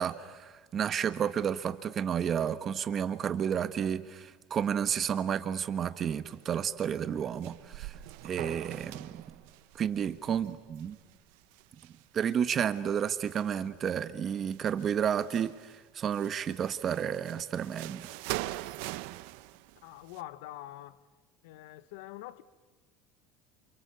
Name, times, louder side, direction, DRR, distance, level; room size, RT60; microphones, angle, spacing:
voice 1, 0.0-7.9 8.2-9.2 9.8-11.0 12.1-18.1, right 8 dB, 35° right, 1.4 m, -31 dB
sound 1, 6.3-6.7 7.0-12.5 13.0-14.0 14.3-15.7 16.1-20.2, right 18 dB, 75° right, 0.9 m, -43 dB
voice 2, 19.8-21.0 21.4-22.4, left 15 dB, 80° left, 1.2 m, -45 dB
28.5 x 28.5 x 7.0 m
supercardioid pair, 140°, 0 cm